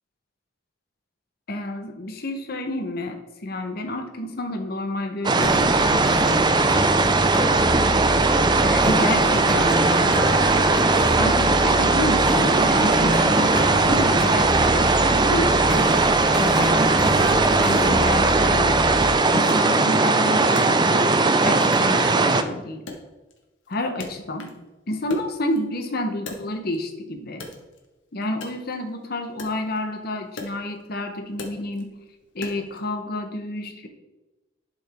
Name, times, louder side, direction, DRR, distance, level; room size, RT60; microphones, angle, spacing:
voice 1, 1.5-6.4 8.6-10.3 11.2-15.9 16.4-18.9 19.3-22.8 23.7-24.5 24.9-27.4 28.1-31.9 32.3-33.9, left 1 dB, 55° left, 5 dB, 1.0 m, -29 dB
sound 1, 5.2-22.4, right 3 dB, 25° right, 0.4 m, -19 dB
sound 2, 5.4-19.1, equal, ahead, 0.8 m, -27 dB
Wood, 19.5-21.3 21.7-22.5 22.9-24.7 25.0-26.9 27.3-32.9, left 3 dB, 85° left, 1.4 m, -41 dB
11.5 x 5.2 x 3.6 m, 1.1 s
head